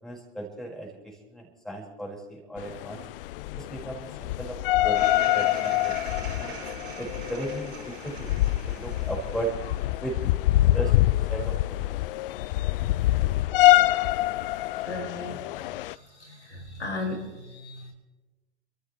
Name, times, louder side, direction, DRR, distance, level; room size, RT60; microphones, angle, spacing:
voice 1, 0.0-3.0 3.5-4.6 4.8-6.0 6.4-6.5 7.0-9.5 10.0-10.2 10.5-11.9, right 2 dB, ahead, -2 dB, 5.4 m, -36 dB
sound 1, 2.6-15.9, left 16 dB, 55° left, 0.5 m, -25 dB
sound 2, 4.9-10.4, right 6 dB, 65° right, 4.1 m, -42 dB
voice 2, 14.8-15.4 15.8-17.9, left 2 dB, 85° left, -2 dB, 6.3 m, -36 dB
30.0 x 14.0 x 3.3 m, 1.1 s
figure-of-eight pair, 85°, 34 cm